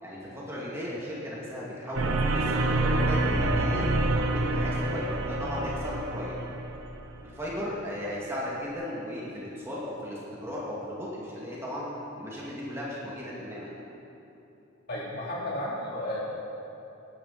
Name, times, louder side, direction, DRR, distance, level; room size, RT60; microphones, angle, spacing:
voice 1, 0.0-3.9 4.3-6.4 7.3-11.9 12.2-13.7, left 1 dB, 10° right, -6 dB, 2.4 m, -36 dB
sound 1, 1.9-7.2, right 2 dB, 75° right, 1.0 m, -27 dB
voice 2, 14.9-16.2, left 1 dB, 50° left, -6 dB, 3.4 m, -33 dB
19.0 x 11.5 x 4.3 m, 3.0 s
head